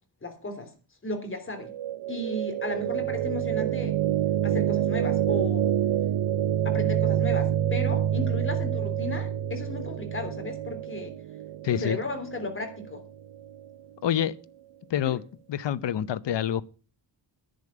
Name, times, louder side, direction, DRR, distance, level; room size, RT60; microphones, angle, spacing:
voice 1, 0.2-0.7 1.0-1.7 2.1-4.0 4.4-5.8 6.6-11.1 11.7-13.0 15.0-15.2, left 2 dB, 25° left, 3.2 m, -35 dB
sound 1, 1.6-13.7, right 10 dB, 75° right, 0.6 m, -27 dB
voice 2, 11.6-12.0 14.0-14.3 14.9-15.2 15.5-16.6, left 10 dB, 70° left, 0.8 m, -26 dB
10.5 x 6.8 x 8.6 m
wide cardioid pair, 150°, 45 cm